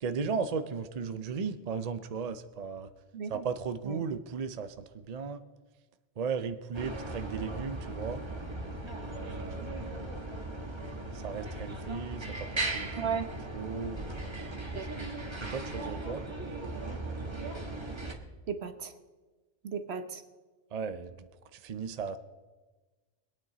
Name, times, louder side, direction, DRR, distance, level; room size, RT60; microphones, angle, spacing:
voice 1, 0.0-2.9 3.3-5.4 6.2-8.2 9.1-10.1 11.1-12.5 12.7-13.2 13.5-14.8 15.4-16.2 20.7-21.2 21.5-22.2, right 5 dB, 45° right, 10 dB, 0.6 m, -36 dB
voice 2, 3.1-3.5 3.8-4.0 13.0-13.3 14.7-14.9 18.5-18.9 19.6-20.2, right 6 dB, 70° right, 9 dB, 1.2 m, -35 dB
sound 1, 6.7-18.1, right 2 dB, 25° right, 1.4 m, -38 dB
24.0 x 9.1 x 4.0 m, 1.3 s
omnidirectional pair, 1.1 m